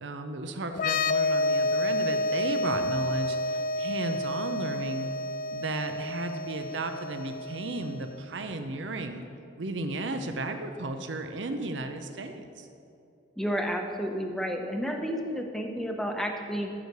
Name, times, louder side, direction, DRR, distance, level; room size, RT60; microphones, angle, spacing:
voice 1, 0.0-5.1 5.5-9.2 9.6-12.7, right 2 dB, 80° right, 7 dB, 0.7 m, -34 dB
sound 1, 0.7-8.2, left 2 dB, 45° left, 0.3 m, -30 dB
voice 2, 13.4-16.7, equal, ahead, 3 dB, 0.8 m, -31 dB
14.0 x 4.9 x 6.7 m, 2.6 s
head